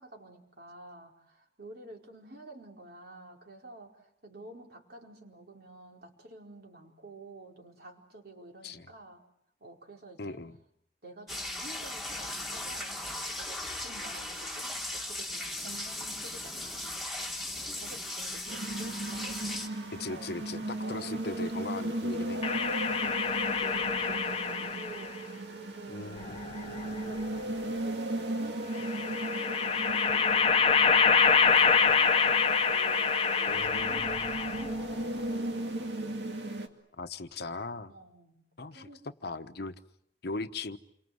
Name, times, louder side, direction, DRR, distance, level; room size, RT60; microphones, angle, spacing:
voice 1, 0.0-9.2 9.6-10.5 11.0-17.0 17.5-19.4 20.0-20.3 20.8-21.3 22.3-26.4 26.7-30.8 31.4-36.3 37.9-38.4 38.7-39.6, right 2 dB, 60° right, 1 dB, 4.7 m, -50 dB
voice 2, 10.2-10.6 19.9-22.4 25.9-26.4 33.5-34.4 37.0-37.9 38.6-39.7 40.2-40.8, left 3 dB, 60° left, 10 dB, 1.1 m, -39 dB
sound 1, 11.3-19.7, left 1 dB, ahead, 2.4 m, -37 dB
sound 2, 18.5-36.7, right 1 dB, 75° right, 2.4 m, -36 dB
sound 3, 22.4-25.1 26.2-27.2 28.8-34.8, left 6 dB, 35° left, 1.0 m, -26 dB
28.5 x 24.5 x 7.9 m, 0.74 s
head